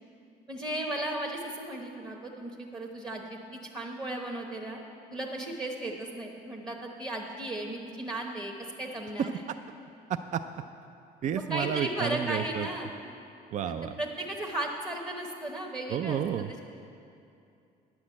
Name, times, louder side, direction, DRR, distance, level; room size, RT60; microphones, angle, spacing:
voice 1, 0.5-4.8 5.1-9.4 11.4-12.9 13.6-16.6, right 1 dB, 25° right, 0 dB, 1.1 m, -36 dB
voice 2, 11.2-12.7 13.5-13.9 15.9-16.5, right 8 dB, 45° right, 9 dB, 0.4 m, -30 dB
9.9 x 6.1 x 8.5 m, 2.6 s
cardioid pair, 110°, 17 cm